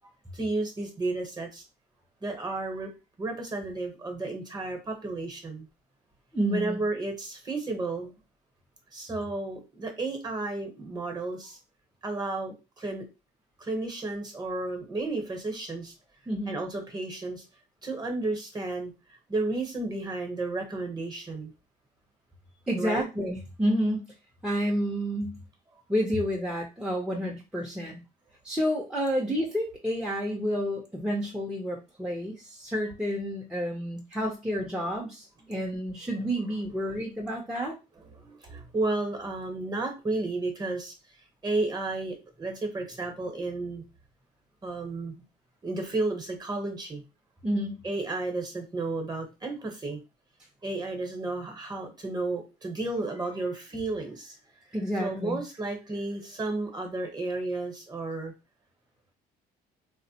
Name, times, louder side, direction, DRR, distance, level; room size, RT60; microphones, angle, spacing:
voice 1, 0.3-1.6 2.2-2.9 3.2-5.7 6.5-8.2 8.9-11.6 12.0-13.0 13.6-15.9 16.5-17.4 17.8-18.9 19.3-21.5 22.7-23.1 36.4-36.5 36.8-36.9 38.1-40.9 41.4-43.8 44.6-45.1 45.6-47.0 47.8-50.0 50.6-54.4 55.0-58.3, right 2 dB, 25° right, 4 dB, 0.9 m, -32 dB
voice 2, 6.3-6.8 16.3-16.6 22.7-24.1 24.4-25.4 25.9-28.0 28.4-37.8 47.4-47.8 54.7-55.4, equal, 5° right, -1 dB, 0.6 m, -30 dB
3.4 x 2.1 x 2.8 m, 0.27 s
cardioid pair, 110°, 17 cm